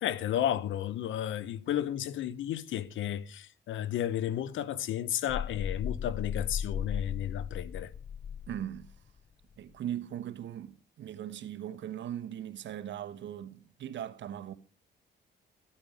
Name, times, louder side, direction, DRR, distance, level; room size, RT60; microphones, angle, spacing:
voice 1, 0.0-7.9, left 11 dB, 75° left, 1.0 m, -33 dB
sound 1, 5.3-9.0, left 7 dB, 30° left, 0.6 m, -36 dB
voice 2, 8.5-8.9 9.6-14.5, right 10 dB, 70° right, 1.2 m, -39 dB
13.5 x 8.8 x 5.1 m
cardioid pair, 90°, 20 cm